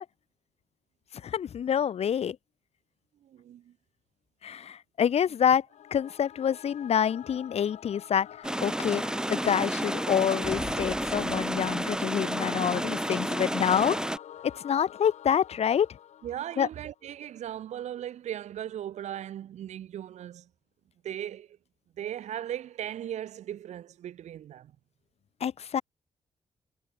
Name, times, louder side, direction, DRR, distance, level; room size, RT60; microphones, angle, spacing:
voice 1, 1.2-2.4 4.4-5.7 5.9-8.3 8.6-9.0 9.3-14.0 14.4-15.9 16.6-16.7 25.4-25.8, left 8 dB, 65° left, 0.8 m, -27 dB
voice 2, 3.2-3.7 16.2-20.5 21.0-21.6 22.0-24.7, right 11 dB, 85° right, 1.1 m, -38 dB
Singing / Musical instrument, 5.7-17.0, left 10 dB, 85° left, 3.3 m, -47 dB
sound 1, 8.4-14.2, right 1 dB, 5° right, 1.4 m, -31 dB
sound 2, 10.4-12.1, left 5 dB, 45° left, 3.2 m, -43 dB
cardioid pair, 75°, 11 cm